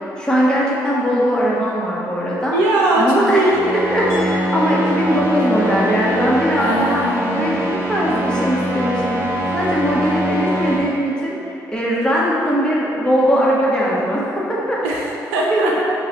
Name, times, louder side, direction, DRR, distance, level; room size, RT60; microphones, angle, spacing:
voice 1, 0.2-2.5 3.0-3.4 3.7-7.0 7.3-9.2 9.5-11.3 11.7-15.0 15.4-15.8, equal, 10° left, -6 dB, 1.3 m, -20 dB
voice 2, 2.5-3.7 6.6-7.6 14.8-15.7, right 2 dB, 85° right, -3 dB, 0.5 m, -19 dB
sound 1, 3.5-10.8, right 1 dB, 25° right, 1.1 m, -23 dB
Mallet percussion, 4.1-7.4, left 1 dB, 40° left, 1.1 m, -29 dB
5.4 x 2.4 x 3.9 m, 2.8 s
hypercardioid pair, 45°, 9 cm